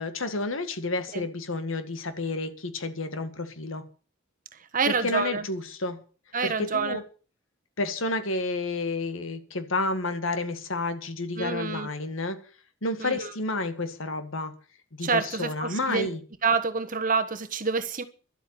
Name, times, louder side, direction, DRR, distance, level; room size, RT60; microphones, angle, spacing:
voice 1, 0.0-3.8 4.9-6.0 6.4-7.0 7.8-12.4 12.8-14.5 15.0-16.2, left 2 dB, 80° left, 1.9 m, -30 dB
voice 2, 4.7-5.4 6.3-7.0 11.4-11.9 13.0-13.3 15.0-16.1 16.4-18.0, right 5 dB, 40° right, 1.4 m, -27 dB
12.0 x 8.2 x 8.7 m
head